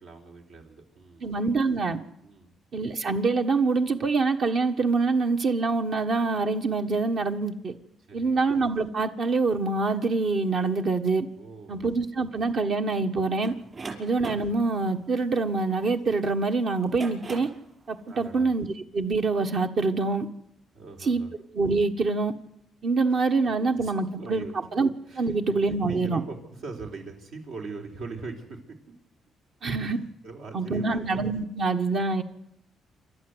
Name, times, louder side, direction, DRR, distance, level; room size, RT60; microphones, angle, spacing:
voice 1, 0.0-1.3 2.2-2.5 8.1-8.4 11.3-11.9 13.7-14.1 18.1-18.5 20.7-21.3 23.1-23.2 23.8-24.6 25.1-28.6 29.8-31.1, right 3 dB, 80° right, 2 dB, 4.2 m, -42 dB
voice 2, 1.2-2.0 2.7-7.7 8.1-11.3 11.7-13.5 14.0-17.5 17.9-18.7 18.9-20.3 21.0-21.2 21.5-22.3 22.8-24.5 24.7-24.9 25.2-26.2 29.6-30.0 30.5-32.2, right 3 dB, 60° right, 5 dB, 1.5 m, -25 dB
sound 1, 13.4-16.1 16.8-17.7, right 4 dB, 35° right, 5.1 m, -40 dB
28.0 x 12.0 x 8.1 m, 0.83 s
cardioid pair, 90°, 0 cm